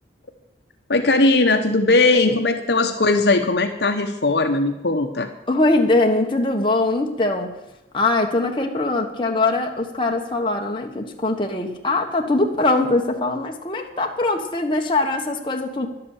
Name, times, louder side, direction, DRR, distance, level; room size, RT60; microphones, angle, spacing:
voice 1, 0.9-5.3, left 2 dB, 65° left, 5 dB, 0.9 m, -19 dB
voice 2, 5.5-7.5 7.9-15.9, left 2 dB, 25° left, 2 dB, 1.3 m, -21 dB
11.5 x 8.4 x 8.4 m, 0.93 s
head